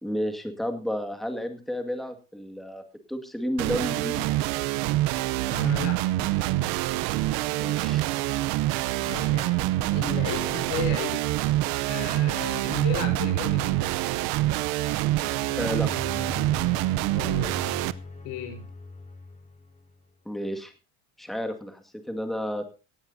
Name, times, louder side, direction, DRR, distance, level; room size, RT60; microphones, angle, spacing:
voice 1, 0.0-2.8 3.1-4.3 7.5-8.1 15.5-15.9 20.3-20.7 21.2-22.7, equal, ahead, 5 dB, 2.0 m, -31 dB
sound 1, 3.6-17.9, right 16 dB, 85° right, 0.8 m, -26 dB
voice 2, 5.5-6.1 9.0-11.2 11.9-13.9 17.1-17.7 18.2-18.6, left 8 dB, 85° left, 6 dB, 5.0 m, -35 dB
sound 2, 14.9-20.0, left 3 dB, 20° left, 6.5 m, -41 dB
18.0 x 14.5 x 2.7 m, 0.32 s
cardioid pair, 115°, 35 cm